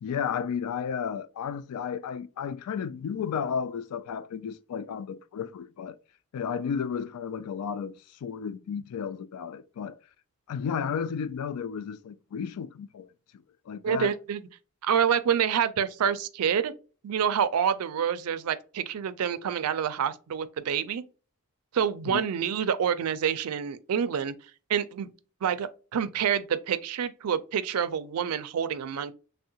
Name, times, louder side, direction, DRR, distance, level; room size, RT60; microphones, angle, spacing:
voice 1, 0.0-6.0 6.3-10.0 10.5-13.1 13.7-14.1 22.1-22.3, left 7 dB, 85° left, 0.3 m, -33 dB
voice 2, 13.8-14.4 14.8-16.7 17.0-21.0 21.7-24.3 24.7-25.1 25.4-29.1, right 8 dB, 80° right, 0.4 m, -27 dB
3.5 x 2.1 x 2.7 m
head